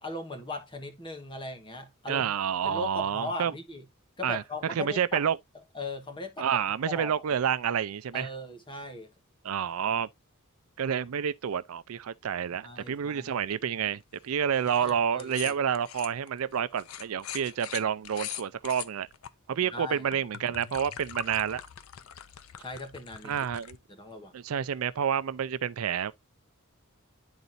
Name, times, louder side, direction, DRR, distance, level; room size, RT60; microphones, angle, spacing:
voice 1, 0.0-2.3 2.6-3.8 4.2-5.2 5.7-6.5 6.9-7.1 8.1-9.1 12.6-13.4 14.8-15.5 19.6-20.0 22.6-23.4 23.9-24.3, left 2 dB, 25° left, 1.3 m, -39 dB
voice 2, 2.1-3.5 4.2-5.4 6.4-8.3 9.4-10.1 10.8-19.1 19.5-21.6 23.2-23.8 24.3-26.1, right 8 dB, 85° right, 0.4 m, -29 dB
sound 1, 14.5-14.9 15.2-19.3 19.9-23.8, left 10 dB, 80° left, 0.6 m, -42 dB
11.0 x 4.0 x 2.6 m
head